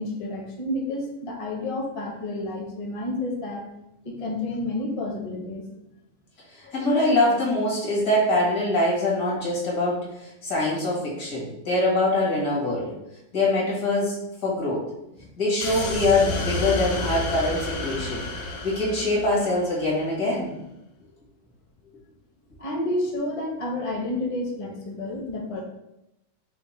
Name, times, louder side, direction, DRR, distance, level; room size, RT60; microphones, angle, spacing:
voice 1, 0.0-3.6 4.0-5.7 6.6-6.7 22.6-25.6, left 1 dB, 35° left, 0 dB, 0.5 m, -30 dB
voice 2, 6.5-12.9 13.3-14.2 14.4-14.8 15.4-18.2 18.6-20.5, left 2 dB, 80° left, -4 dB, 2.1 m, -23 dB
sound 1, 15.6-20.0, left 2 dB, 60° left, 1.0 m, -30 dB
5.6 x 2.1 x 4.1 m, 0.87 s
omnidirectional pair, 1.6 m